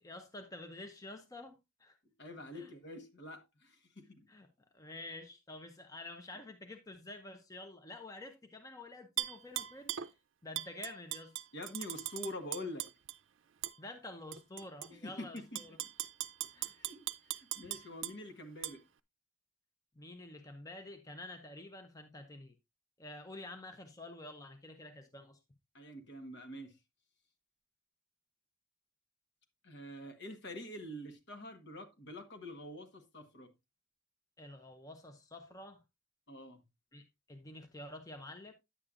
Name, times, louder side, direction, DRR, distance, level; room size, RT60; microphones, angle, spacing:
voice 1, 0.0-2.0 2.5-2.7 4.3-4.5 4.7-10.1 10.4-11.3 13.8-15.8 16.5-16.7 20.0-22.6 23.0-25.4 34.4-35.8 36.9-38.5, left 2 dB, 20° left, 0.7 m, -49 dB
voice 2, 2.2-4.3 11.5-12.9 14.9-15.5 15.8-15.9 16.7-18.8 25.7-26.8 29.6-33.5 36.3-36.6, left 1 dB, 60° left, 1.3 m, -46 dB
Tap / Glass, 9.2-10.1 10.6-13.2 13.6-13.8 14.3-14.9 15.4-18.2 18.6-18.7, right 14 dB, 70° right, 0.5 m, -39 dB
9.9 x 8.4 x 2.4 m
head